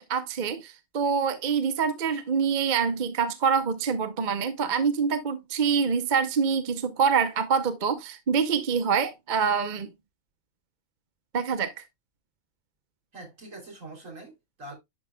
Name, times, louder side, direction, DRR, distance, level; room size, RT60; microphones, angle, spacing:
voice 1, 0.0-9.9 11.3-11.7, right 6 dB, 40° right, 0.8 m, -25 dB
voice 2, 13.1-14.8, right 2 dB, 70° right, 3.5 m, -43 dB
11.0 x 5.2 x 2.2 m
omnidirectional pair, 1.4 m